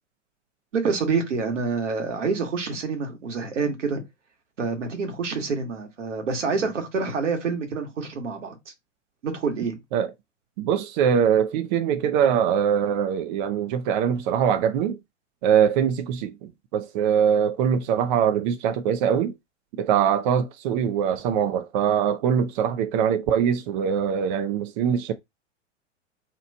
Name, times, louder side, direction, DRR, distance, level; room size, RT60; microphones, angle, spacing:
voice 1, 0.7-4.0 4.6-8.6 9.2-9.8, right 4 dB, 75° right, 1.2 m, -27 dB
voice 2, 10.6-15.0 15.4-19.3 19.8-25.1, right 8 dB, 40° right, 0.4 m, -22 dB
2.9 x 2.3 x 4.1 m
figure-of-eight pair, 95°, 37 cm